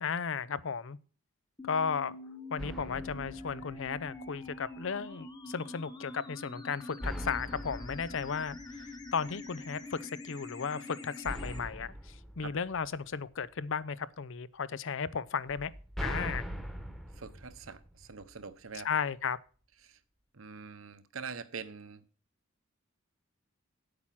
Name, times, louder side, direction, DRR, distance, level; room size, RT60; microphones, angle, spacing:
voice 1, 0.0-1.0 1.6-2.1 2.5-8.8 9.1-15.7 16.0-16.5 18.7-19.4, left 6 dB, 65° left, 0.6 m, -35 dB
sound 1, 1.6-11.6, left 2 dB, 20° left, 1.3 m, -45 dB
sound 2, 2.6-4.5 7.0-9.4 11.3-13.5 15.5-18.5, equal, ahead, 1.1 m, -42 dB
voice 2, 17.2-18.9 19.8-20.0 20.3-22.0, right 5 dB, 75° right, 1.0 m, -44 dB
8.7 x 8.7 x 6.0 m
head